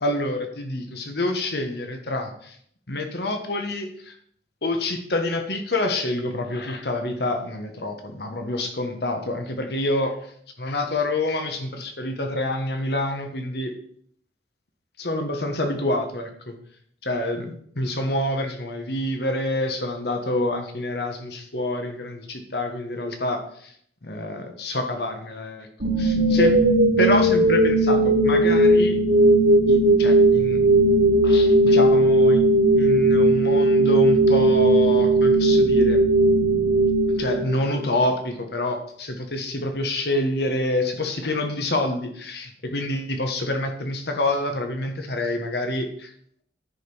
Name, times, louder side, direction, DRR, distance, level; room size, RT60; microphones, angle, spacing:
voice 1, 0.0-2.6 2.9-4.1 4.6-10.1 10.6-13.7 15.0-16.5 17.0-23.7 24.0-25.7 26.0-26.5 27.0-29.0 29.7-30.6 31.2-32.4 32.8-36.0 37.1-46.1, left 1 dB, 65° left, 5 dB, 1.3 m, -27 dB
sound 1, 25.8-37.8, right 1 dB, 70° right, 1.3 m, -17 dB
10.5 x 5.1 x 5.4 m, 0.64 s
head